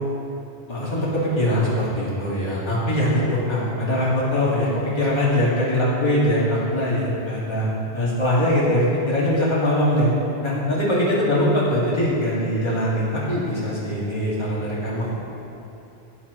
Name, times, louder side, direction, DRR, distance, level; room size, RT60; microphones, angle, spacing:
voice 1, 0.7-7.7 7.9-10.1 10.4-15.2, left 1 dB, 25° left, -8 dB, 2.1 m, -22 dB
11.5 x 9.9 x 3.1 m, 2.8 s
omnidirectional pair, 1.1 m